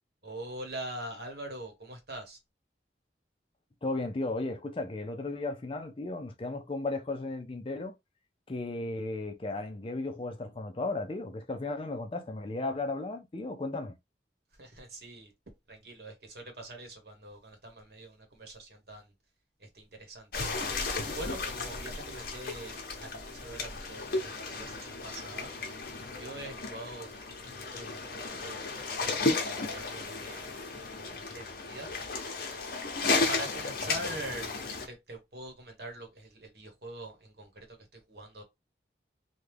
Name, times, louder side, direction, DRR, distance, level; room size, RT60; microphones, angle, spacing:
voice 1, 0.2-2.4 14.6-15.3 15.7-19.1 19.6-20.3 21.1-25.5 26.2-30.4 31.3-31.9 33.3-34.5 34.9-38.4, right 1 dB, 60° right, 1.1 m, -44 dB
voice 2, 3.8-7.9 8.5-13.9, left 2 dB, 30° left, 0.4 m, -35 dB
sound 1, 20.3-34.9, left 3 dB, 55° left, 0.8 m, -34 dB
3.1 x 2.2 x 3.3 m
head